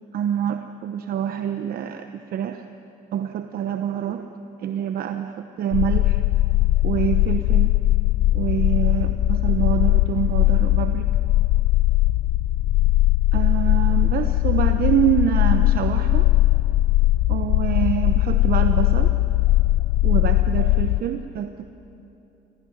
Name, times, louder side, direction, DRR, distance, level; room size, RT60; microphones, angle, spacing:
voice 1, 0.1-2.7 3.1-4.3 4.6-6.2 6.8-7.7 8.3-11.1 13.3-16.3 17.3-19.1 20.0-21.6, right 9 dB, 60° right, 8 dB, 1.0 m, -26 dB
sound 1, 5.7-21.0, left 16 dB, 80° left, 0.6 m, -19 dB
26.0 x 17.0 x 10.0 m, 2.9 s
cardioid pair, 110°, 17 cm